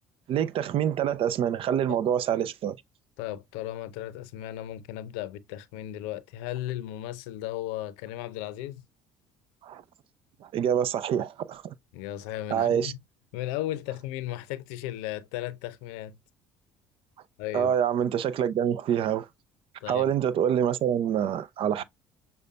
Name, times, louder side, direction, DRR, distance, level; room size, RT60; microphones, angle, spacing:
voice 1, 0.3-2.8 9.6-9.8 10.4-11.7 12.5-12.9 17.5-19.3 19.9-21.8, right 9 dB, 55° right, 0.5 m, -26 dB
voice 2, 3.2-8.8 11.9-13.0 13.3-16.2 17.4-17.7 19.8-20.1, left 13 dB, 80° left, 0.6 m, -35 dB
6.5 x 2.2 x 2.5 m
supercardioid pair, 75°, 11 cm